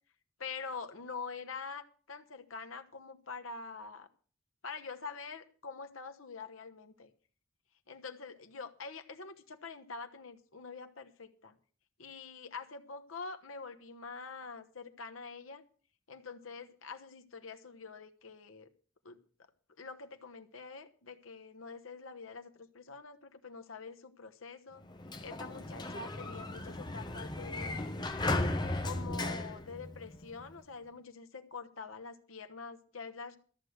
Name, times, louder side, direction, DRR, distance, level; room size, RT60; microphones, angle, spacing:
voice 1, 0.4-4.1 4.6-7.1 7.9-11.6 12.0-15.6 16.1-18.7 19.0-19.2 19.8-24.8 25.2-28.0 28.8-33.4, left 4 dB, 90° left, 7 dB, 1.1 m, -45 dB
Sliding door, 24.8-30.5, left 2 dB, 20° left, 1.0 m, -36 dB
13.5 x 6.5 x 7.9 m, 0.43 s
head